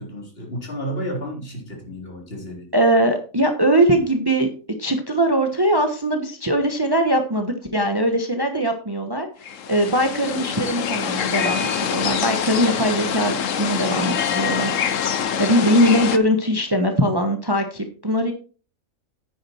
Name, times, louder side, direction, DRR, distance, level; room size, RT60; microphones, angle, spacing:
voice 1, 0.0-2.7, equal, 45° left, 0 dB, 3.7 m, -32 dB
voice 2, 2.7-4.5 4.8-18.3, equal, 20° right, 5 dB, 1.1 m, -21 dB
sound 1, 9.4-16.2, left 7 dB, 75° left, 1.2 m, -25 dB
9.7 x 8.8 x 4.4 m, 0.39 s
omnidirectional pair, 1.4 m